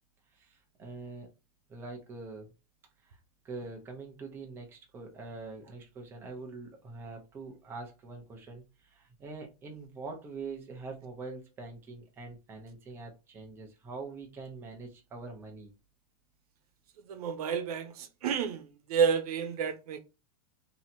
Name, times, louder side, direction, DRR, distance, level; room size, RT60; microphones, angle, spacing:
voice 1, 0.3-1.3 1.7-2.5 3.0-3.2 3.4-15.7, right 3 dB, 10° right, 0.6 m, -44 dB
voice 2, 17.1-18.6 18.9-20.0, right 6 dB, 85° right, 0.9 m, -30 dB
3.1 x 2.9 x 4.1 m
supercardioid pair, 175°, 19 cm